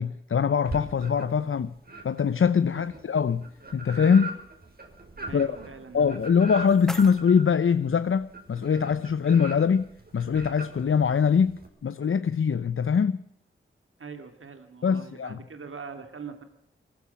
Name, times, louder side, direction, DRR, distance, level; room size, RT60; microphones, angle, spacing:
voice 1, 0.0-1.7 2.0-3.4 3.7-4.4 5.3-5.6 5.9-13.2 14.8-15.4, left 6 dB, 75° left, 0.8 m, -23 dB
sound 1, 0.6-1.5 1.8-11.7, right 2 dB, 45° right, 5.8 m, -41 dB
voice 2, 5.2-6.4 14.0-16.4, right 5 dB, 80° right, 2.7 m, -42 dB
sound 2, 6.1-8.1, equal, ahead, 0.9 m, -44 dB
23.0 x 15.0 x 8.5 m
wide cardioid pair, 75°, 21 cm